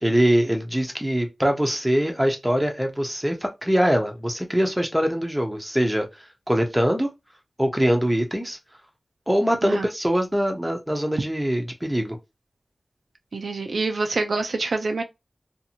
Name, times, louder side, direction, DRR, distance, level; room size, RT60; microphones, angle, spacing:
voice 1, 0.0-7.1 7.6-8.6 9.3-12.2, equal, 5° right, 0.7 m, -23 dB
voice 2, 13.3-15.0, right 3 dB, 80° right, 0.4 m, -26 dB
2.7 x 2.5 x 2.7 m
wide cardioid pair, 80°, 0 cm